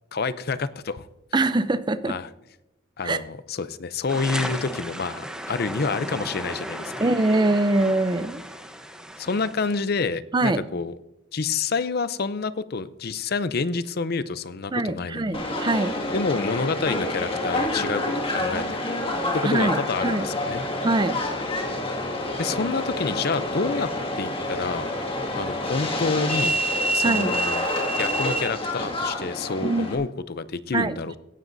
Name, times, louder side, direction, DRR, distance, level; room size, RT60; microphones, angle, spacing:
voice 1, 0.1-1.1 2.1-2.3 3.0-7.0 9.2-10.9 11.3-15.4 16.1-18.8 19.3-20.6 22.4-24.9 25.3-26.6 26.9-27.6 28.0-31.2, left 4 dB, 50° left, 14 dB, 0.6 m, -28 dB
voice 2, 1.3-2.1 3.0-3.2 7.0-8.4 10.3-10.6 14.7-15.9 19.4-20.3 20.8-21.1 27.0-27.3 29.6-30.0 30.7-31.2, right 2 dB, 25° right, 13 dB, 0.5 m, -23 dB
sound 1, 4.1-9.8, equal, 5° right, 0.9 m, -35 dB
Subway metro underground, 15.3-30.0, left 1 dB, 30° left, 2.0 m, -27 dB
16.5 x 12.0 x 2.7 m, 0.93 s
head